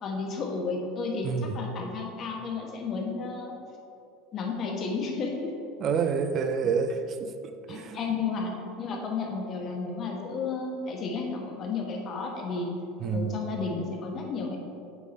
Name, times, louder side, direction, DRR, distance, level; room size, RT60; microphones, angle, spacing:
voice 1, 0.0-3.5 4.3-5.5 7.7-12.7 13.1-14.6, left 4 dB, 40° left, 0 dB, 1.2 m, -32 dB
voice 2, 1.2-1.6 5.8-8.0 13.0-13.4, right 6 dB, 40° right, 8 dB, 0.5 m, -28 dB
8.2 x 3.7 x 4.2 m, 2.5 s
supercardioid pair, 125°, 0 cm